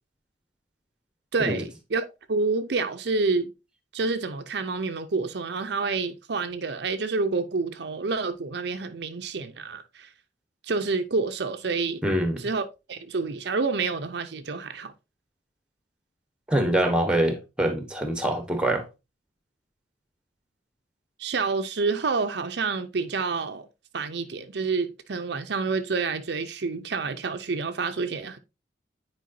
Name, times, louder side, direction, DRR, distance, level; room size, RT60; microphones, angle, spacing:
voice 1, 1.3-3.5 3.9-10.1 10.6-12.0 12.4-14.9 21.2-23.7 23.9-28.4, right 4 dB, 60° right, 0.6 m, -28 dB
voice 2, 12.0-12.5 16.5-18.8, right 1 dB, 5° right, 1.0 m, -24 dB
9.3 x 4.6 x 2.6 m
head